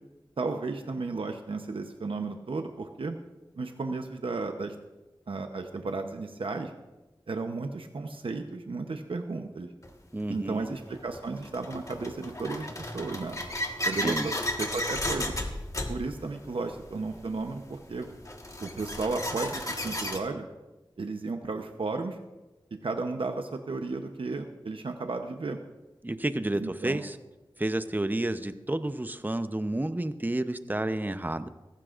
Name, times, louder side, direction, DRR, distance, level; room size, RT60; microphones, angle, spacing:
voice 1, 0.4-3.2 3.6-4.7 5.3-6.7 7.3-9.7 10.3-13.4 13.8-15.3 15.9-18.1 18.6-20.5 21.0-22.2 22.8-25.6 26.6-27.0, right 3 dB, 85° right, 5 dB, 0.8 m, -34 dB
sound 1, 9.8-9.9 10.8-20.2, left 1 dB, 35° left, 1.5 m, -34 dB
voice 2, 10.1-10.7 14.0-14.3 26.0-27.1 27.6-31.5, right 1 dB, 20° right, 10 dB, 0.7 m, -30 dB
18.5 x 15.0 x 2.5 m, 1.1 s
wide cardioid pair, 50°, 9 cm